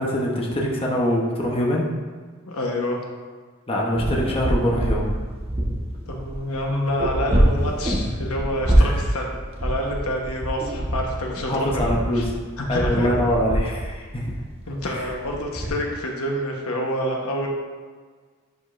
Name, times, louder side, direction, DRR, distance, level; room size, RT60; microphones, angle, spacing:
voice 1, 0.0-1.9 3.7-5.0 8.8-9.0 11.5-12.3 12.7-14.2 14.9-15.1, equal, 25° left, -2 dB, 0.9 m, -24 dB
voice 2, 2.4-3.0 6.1-9.3 9.6-12.2 12.6-13.1 14.7-17.5, left 1 dB, 80° left, 0 dB, 1.1 m, -27 dB
sound 1, 4.0-15.7, right 1 dB, 25° right, 1.2 m, -25 dB
10.5 x 5.2 x 2.6 m, 1.5 s
head